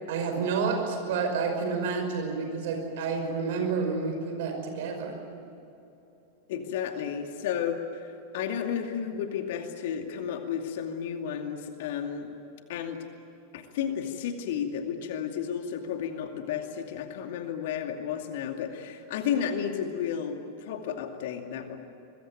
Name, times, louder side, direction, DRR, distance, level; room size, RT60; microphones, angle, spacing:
voice 1, 0.1-5.2, right 5 dB, 55° right, 4 dB, 5.6 m, -29 dB
voice 2, 6.5-12.3 12.7-13.0 13.5-21.8, left 8 dB, 55° left, 5 dB, 2.5 m, -32 dB
25.5 x 21.5 x 9.3 m, 2.9 s
figure-of-eight pair, 90°, 0 cm